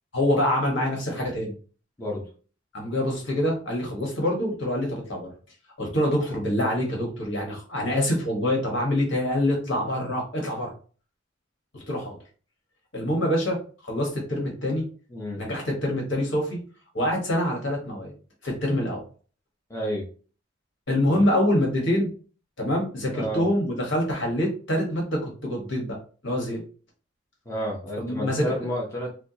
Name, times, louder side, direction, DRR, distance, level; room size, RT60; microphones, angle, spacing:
voice 1, 0.1-1.5 2.7-5.3 5.8-10.7 11.9-12.2 12.9-13.6 13.9-14.9 15.4-16.6 16.9-18.1 18.4-19.0 20.9-22.1 22.6-26.0 26.2-26.6 27.9-28.7, left 1 dB, 65° left, -1 dB, 1.4 m, -25 dB
voice 2, 15.1-15.4 19.7-20.0 21.1-21.3 23.1-23.4 27.5-29.3, equal, 15° left, -4 dB, 0.8 m, -31 dB
4.4 x 2.3 x 2.8 m, 0.39 s
head